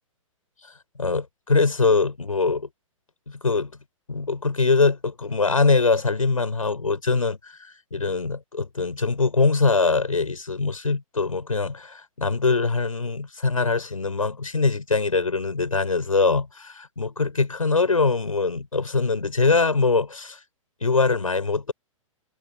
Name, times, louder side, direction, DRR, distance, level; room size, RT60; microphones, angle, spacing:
voice 1, 1.0-2.7 3.4-3.7 4.1-7.5 7.9-20.4 20.8-21.7, left 4 dB, 75° left, 7.1 m, -22 dB
figure-of-eight pair, 115°, 18 cm